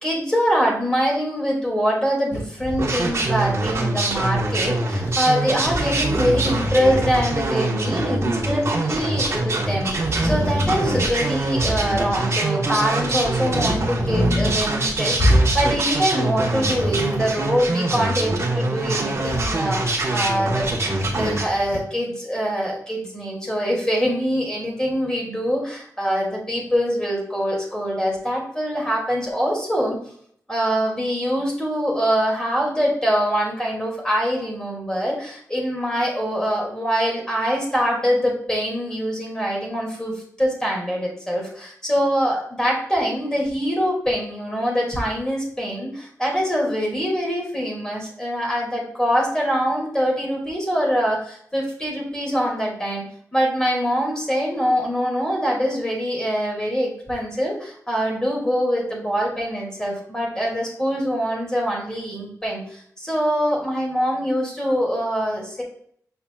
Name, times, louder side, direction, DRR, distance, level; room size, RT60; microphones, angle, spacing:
voice 1, 0.0-20.7 21.1-30.0 30.5-53.0 53.3-65.6, equal, 10° left, -2 dB, 2.6 m, -24 dB
sound 1, 2.3-3.5 5.1-5.3 5.5-7.5 7.8-7.9 9.7-12.3 13.4-14.6 14.9-15.8 16.2-17.6 19.1-19.6 20.7-21.8, equal, 45° left, 1.7 m, -26 dB
sound 2, 2.8-21.5, right 2 dB, 50° right, 1.3 m, -24 dB
6.9 x 5.6 x 2.4 m, 0.62 s
wide cardioid pair, 115°, 6 cm